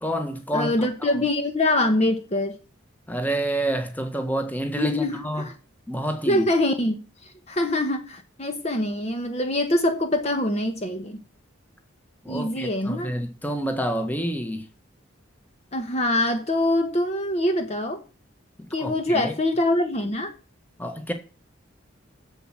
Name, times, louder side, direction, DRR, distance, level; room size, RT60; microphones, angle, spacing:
voice 1, 0.0-0.9 3.1-5.5 5.9-6.5 12.2-14.6 18.8-19.3 20.8-21.1, right 1 dB, 10° left, 1.4 m, -28 dB
voice 2, 0.5-2.6 4.8-5.5 6.3-7.0 7.5-11.2 12.3-13.1 15.7-18.0 18.7-20.3, left 1 dB, 30° left, 1.1 m, -24 dB
7.9 x 7.5 x 7.7 m
head